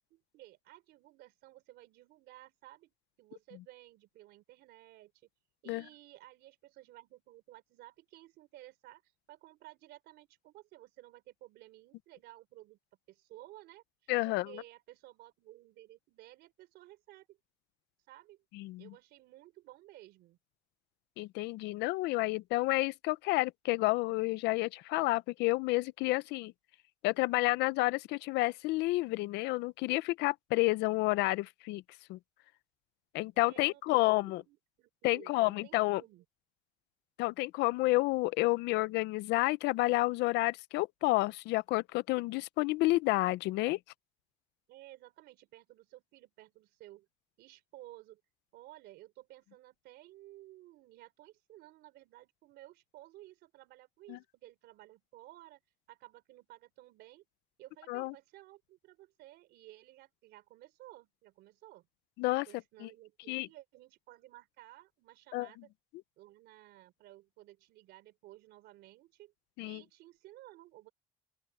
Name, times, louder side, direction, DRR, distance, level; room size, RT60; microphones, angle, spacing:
voice 1, 0.1-2.9 3.2-5.3 5.6-12.8 13.1-17.4 18.1-18.4 18.8-20.4 33.3-36.2 44.7-47.1 47.4-48.2 48.5-55.6 55.9-57.2 57.6-61.9 62.5-65.7 66.2-69.3 69.6-70.9, right 16 dB, 85° right, 3.6 m, -55 dB
voice 2, 14.1-14.6 18.5-18.9 21.2-26.5 27.0-31.8 32.1-32.2 33.1-34.4 35.0-36.0 37.2-43.8 54.1-54.2 57.9-58.1 62.2-62.5 62.8-62.9 63.3-63.5 65.3-65.5 69.6-69.8, left 20 dB, 90° left, 0.6 m, -30 dB
open air
cardioid pair, 110°, 17 cm